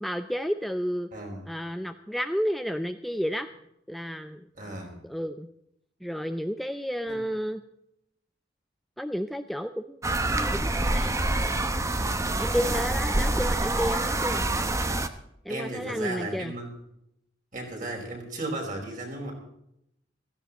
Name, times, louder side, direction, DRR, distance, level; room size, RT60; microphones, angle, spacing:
voice 1, 0.0-1.1 1.5-3.5 3.9-4.5 5.0-5.5 6.0-7.6 9.0-10.0 10.3-11.2 12.4-14.4 15.5-16.5, equal, ahead, 8 dB, 0.5 m, -31 dB
voice 2, 1.1-1.4 4.5-4.9 7.1-7.2 12.5-12.8 15.5-16.7 17.5-19.3, right 2 dB, 45° right, 0 dB, 5.2 m, -35 dB
sound 1, 10.0-15.1, right 2 dB, 15° right, 0.9 m, -26 dB
16.0 x 15.0 x 4.1 m, 0.78 s
head